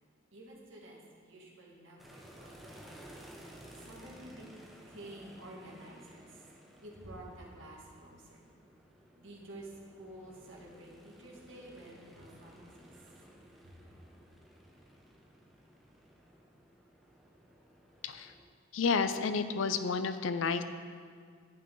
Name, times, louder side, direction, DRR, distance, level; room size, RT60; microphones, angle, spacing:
voice 1, 0.3-3.0 3.7-4.5 4.9-6.4 6.8-8.4 9.1-12.9 13.6-13.8, right 1 dB, 70° right, -3 dB, 1.9 m, -50 dB
sound 1, 2.0-18.4, equal, ahead, 1.0 m, -56 dB
voice 2, 18.7-20.6, left 5 dB, 70° left, 11 dB, 0.5 m, -30 dB
9.8 x 8.9 x 3.8 m, 2.1 s
head